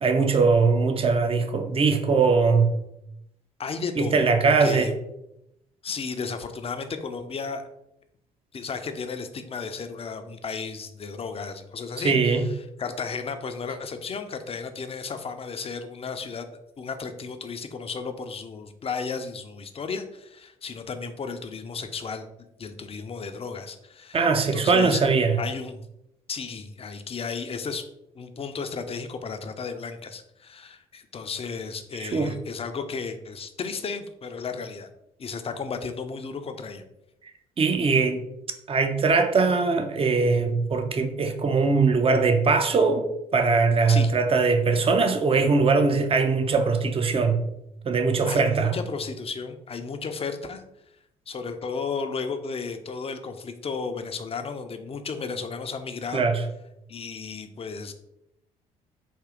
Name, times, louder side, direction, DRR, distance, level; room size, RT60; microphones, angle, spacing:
voice 1, 0.0-2.7 4.0-4.9 12.0-12.4 24.1-25.4 32.0-32.3 37.6-38.2 38.7-43.1 43.3-47.4 47.8-48.7 56.1-56.4, right 4 dB, 30° right, 0.6 m, -21 dB
voice 2, 3.6-4.9 5.8-7.7 8.5-16.5 16.8-25.1 25.4-25.8 26.3-27.9 28.1-34.9 35.2-36.8 43.9-44.1 48.3-50.6 51.3-56.3 56.9-57.9, left 5 dB, 35° left, 0.6 m, -34 dB
4.4 x 2.7 x 3.7 m
hypercardioid pair, 50°, 18 cm